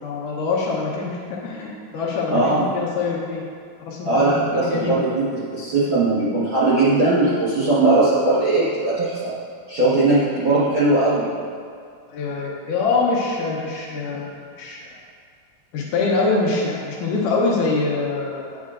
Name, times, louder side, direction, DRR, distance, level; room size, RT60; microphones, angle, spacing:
voice 1, 0.0-3.5 3.9-5.0 12.1-15.0 15.7-18.6, left 3 dB, 75° left, -3 dB, 2.2 m, -24 dB
voice 2, 2.3-2.7 4.0-5.3 5.5-9.3 9.7-11.3, right 2 dB, 55° right, -11 dB, 1.4 m, -19 dB
8.4 x 8.3 x 2.5 m, 2.2 s
omnidirectional pair, 4.1 m